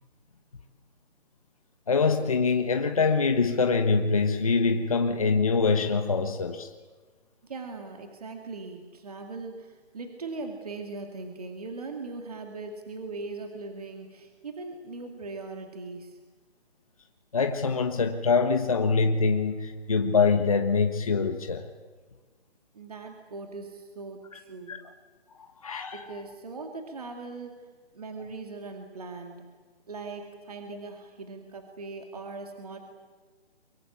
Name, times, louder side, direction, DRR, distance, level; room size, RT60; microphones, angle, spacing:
voice 1, 1.9-6.7 17.3-21.6 24.7-24.8 25.4-26.0, left 4 dB, 30° left, 6 dB, 1.3 m, -24 dB
voice 2, 7.4-16.2 22.7-24.8 25.9-27.7 27.9-29.5 29.9-32.8, right 3 dB, 35° right, 4 dB, 2.3 m, -40 dB
23.5 x 23.5 x 8.7 m, 1.4 s
hypercardioid pair, 180°, 33 cm